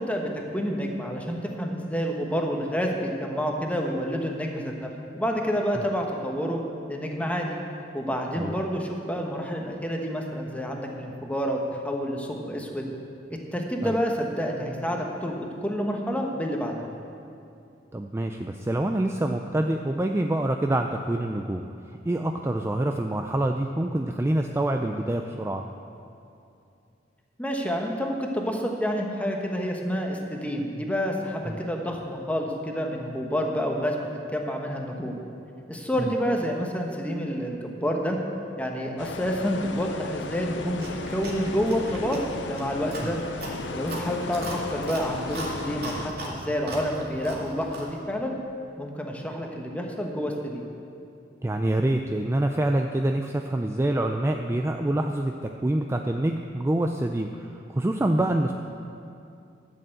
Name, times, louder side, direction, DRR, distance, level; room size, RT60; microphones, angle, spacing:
voice 1, 0.0-6.6 6.9-7.6 7.9-12.9 13.3-16.8 27.4-34.0 34.3-35.1 35.7-38.2 38.6-43.2 43.7-48.3 48.8-50.6, equal, 10° left, 1 dB, 1.1 m, -29 dB
voice 2, 17.9-21.6 22.1-25.6 31.5-31.6 36.0-36.1 43.0-43.1 51.4-58.5, right 1 dB, 15° right, 4 dB, 0.4 m, -26 dB
sound 1, 39.0-46.1, left 3 dB, 75° left, 0.7 m, -35 dB
Chewing mastication, 40.8-48.0, right 1 dB, 60° right, 2.3 m, -38 dB
12.0 x 6.8 x 7.8 m, 2.6 s
head